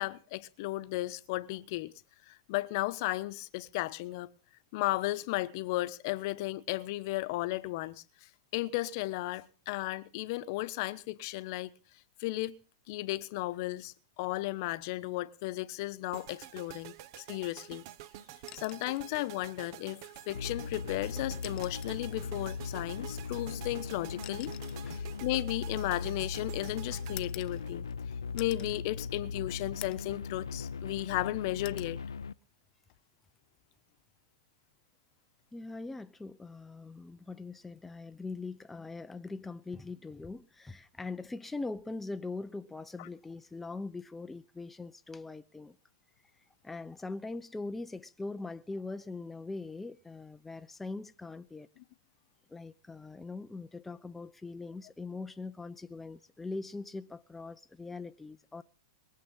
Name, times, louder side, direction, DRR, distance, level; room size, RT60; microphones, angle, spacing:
voice 1, 0.0-1.9 2.3-4.3 4.7-11.7 12.2-12.6 12.9-17.8 18.5-24.5 24.8-27.8 28.3-32.0 43.0-43.1, left 18 dB, 55° left, 1.1 m, -35 dB
sound 1, 16.1-28.3, right 13 dB, 55° right, 1.3 m, -49 dB
sound 2, 18.4-19.1 20.5-20.7 21.3-22.1 23.3-26.3 27.2-28.0 28.4-28.8 29.2-29.3 29.8-30.2 30.6-31.2 31.6-32.0 33.4-33.7, left 13 dB, 35° left, 0.9 m, -49 dB
sound 3, 20.3-32.3, left 5 dB, 90° left, 0.6 m, -39 dB
voice 2, 35.5-45.8 46.6-51.7 52.5-58.6, left 3 dB, 10° left, 0.6 m, -41 dB
22.5 x 7.7 x 5.5 m
hypercardioid pair, 120°, 2 cm